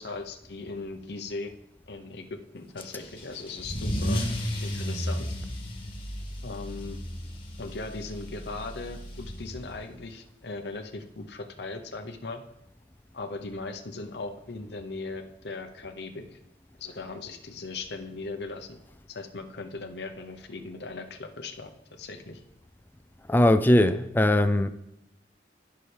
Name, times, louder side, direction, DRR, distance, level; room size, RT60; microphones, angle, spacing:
voice 1, 0.0-1.5 1.9-4.2 4.6-5.4 6.4-7.0 7.6-12.4 13.1-16.2 16.8-18.8 19.1-22.4, left 3 dB, 65° left, 0.8 m, -38 dB
Car / Engine starting / Accelerating revving vroom, 2.8-9.9, equal, 30° left, 1.7 m, -34 dB
voice 2, 23.3-24.7, left 1 dB, 10° left, 0.3 m, -20 dB
15.0 x 5.7 x 3.3 m
head